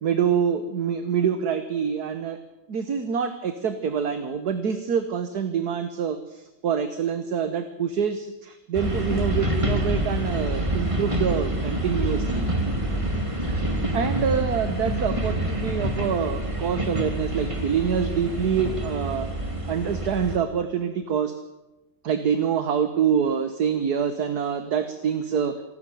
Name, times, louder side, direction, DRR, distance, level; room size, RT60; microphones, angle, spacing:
voice 1, 0.0-2.4 2.7-12.5 13.9-19.3 19.7-21.3 22.0-25.6, right 7 dB, 60° right, 9 dB, 1.8 m, -26 dB
sound 1, 8.7-20.4, right 1 dB, 15° right, 2.6 m, -27 dB
27.0 x 12.5 x 9.3 m, 0.98 s
omnidirectional pair, 2.0 m